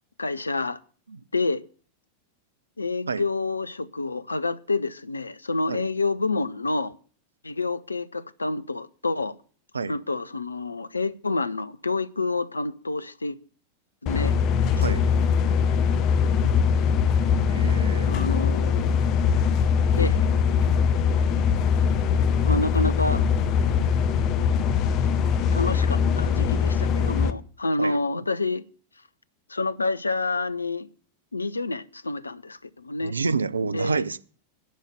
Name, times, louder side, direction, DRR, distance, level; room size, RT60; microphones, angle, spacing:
voice 1, 0.2-0.8 1.3-1.6 2.8-6.9 7.4-9.3 9.9-13.4 14.0-14.3 18.1-19.0 19.9-20.2 22.5-23.2 25.5-28.6 29.5-30.9 31.3-33.1 33.7-34.0, left 3 dB, 80° left, 0.5 m, -28 dB
sound 1, 14.1-27.3, left 6 dB, 40° left, 0.8 m, -22 dB
voice 2, 17.5-18.9 27.8-28.0 33.0-34.2, right 4 dB, 75° right, 0.5 m, -29 dB
10.5 x 5.6 x 8.3 m
figure-of-eight pair, 90°, 0 cm